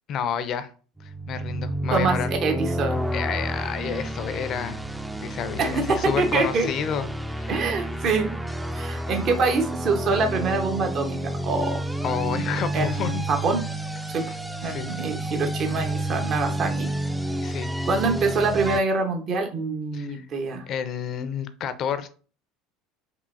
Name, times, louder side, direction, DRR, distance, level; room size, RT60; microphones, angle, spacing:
voice 1, 0.1-0.7 1.0-2.3 3.1-4.8 5.2-7.5 12.0-13.2 14.1-14.4 14.6-14.9 17.4-17.7 19.9-20.3 20.7-22.1, left 7 dB, 50° left, 12 dB, 0.5 m, -30 dB
sound 1, 1.0-18.8, right 1 dB, 5° right, 0.4 m, -30 dB
voice 2, 2.4-3.0 5.6-6.7 7.5-8.3 8.7-11.8 12.7-13.6 14.1-14.2 14.6-16.9 17.9-20.6, right 4 dB, 50° right, 4 dB, 0.8 m, -25 dB
4.7 x 2.7 x 2.5 m, 0.40 s
hypercardioid pair, 70°, 0 cm